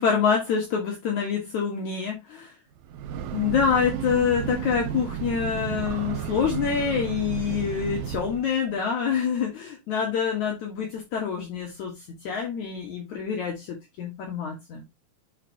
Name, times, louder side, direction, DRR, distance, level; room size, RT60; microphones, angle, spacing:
voice 1, 0.0-2.5 3.3-14.8, left 7 dB, 60° left, 2.5 m, -26 dB
Breathing / Train, 2.8-8.5, right 9 dB, 85° right, 1.6 m, -33 dB
10.5 x 4.4 x 2.8 m
omnidirectional pair, 4.2 m